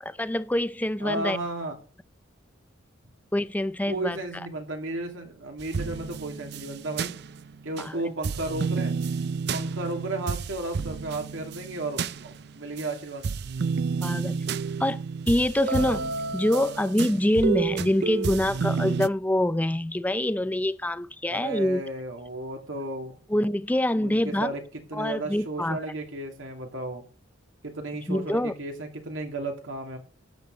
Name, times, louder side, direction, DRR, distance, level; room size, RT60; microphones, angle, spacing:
voice 1, 0.0-1.4 3.3-4.2 7.8-8.0 14.0-14.4 14.8-21.8 23.3-24.5 24.9-25.8 28.1-28.5, left 1 dB, 10° left, 0.4 m, -25 dB
voice 2, 1.0-1.8 3.9-7.1 7.6-8.9 9.5-13.3 21.3-23.2 24.0-24.6 24.9-27.0 27.6-30.0, right 2 dB, 75° right, 2.6 m, -34 dB
sound 1, 5.6-7.9 8.2-12.9 13.2-19.1, right 5 dB, 55° right, 0.4 m, -30 dB
13.0 x 8.9 x 3.9 m
head